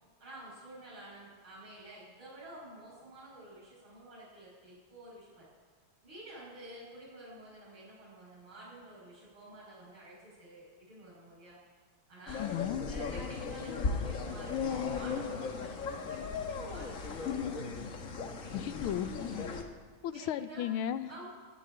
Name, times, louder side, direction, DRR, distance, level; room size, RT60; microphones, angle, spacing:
voice 1, 0.2-5.5 6.0-11.6 12.1-12.4 12.9-17.6 18.4-18.8 20.1-20.7 21.1-21.3, right 1 dB, 70° right, -11 dB, 7.1 m, -50 dB
sound 1, 12.3-19.6, left 5 dB, 45° left, 1.4 m, -36 dB
voice 2, 12.4-12.8 18.5-19.5 20.0-21.1, left 10 dB, 85° left, 13 dB, 1.5 m, -35 dB
17.0 x 7.3 x 10.0 m, 1.4 s
omnidirectional pair, 2.3 m